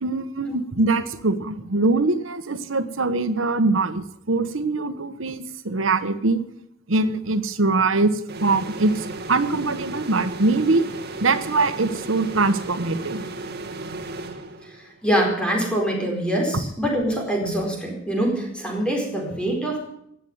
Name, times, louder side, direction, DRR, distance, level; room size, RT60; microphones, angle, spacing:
voice 1, 0.0-6.4 6.9-10.9 11.2-13.2 16.5-16.6, right 3 dB, 75° right, 11 dB, 1.1 m, -23 dB
sound 1, 8.3-15.0, right 2 dB, 55° right, 1.9 m, -34 dB
voice 2, 15.0-19.8, right 1 dB, 5° left, 0 dB, 4.6 m, -24 dB
17.5 x 8.0 x 9.3 m, 0.74 s
head